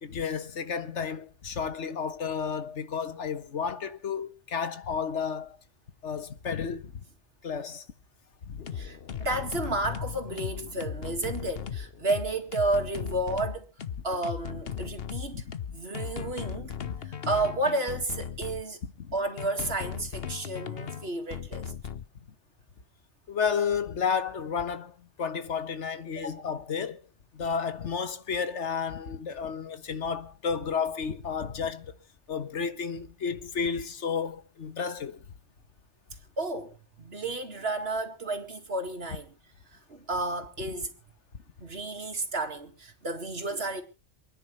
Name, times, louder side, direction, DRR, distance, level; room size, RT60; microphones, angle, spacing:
voice 1, 0.0-5.6 6.0-7.0 7.4-7.8 8.5-8.6 15.3-15.4 19.0-19.1 23.3-27.0 27.3-31.9 32.3-35.2, left 6 dB, 85° left, 1.6 m, -32 dB
sound 1, 8.6-18.6 19.4-22.1, left 8 dB, 60° left, 1.1 m, -37 dB
voice 2, 8.7-13.7 14.0-15.4 15.7-18.8 19.1-21.7 26.2-26.5 36.4-39.3 39.7-40.9 41.6-43.8, right 2 dB, 60° right, 2.5 m, -32 dB
28.0 x 10.0 x 3.3 m
omnidirectional pair, 1.2 m